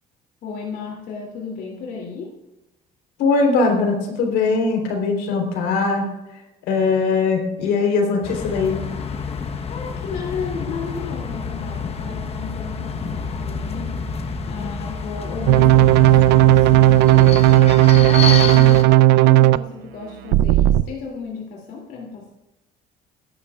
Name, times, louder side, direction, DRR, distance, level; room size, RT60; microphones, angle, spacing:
voice 1, 0.4-2.4 9.7-17.5 18.0-22.3, left 5 dB, 70° left, -2 dB, 2.8 m, -34 dB
voice 2, 3.2-6.1 6.7-8.8, left 4 dB, 90° left, 2 dB, 3.6 m, -20 dB
sound 1, 8.2-18.8, left 5 dB, 35° left, 1.1 m, -28 dB
sound 2, 15.5-19.6 20.3-20.8, right 16 dB, 90° right, 0.5 m, -13 dB
22.5 x 11.0 x 2.4 m, 0.98 s
cardioid pair, 110°, 17 cm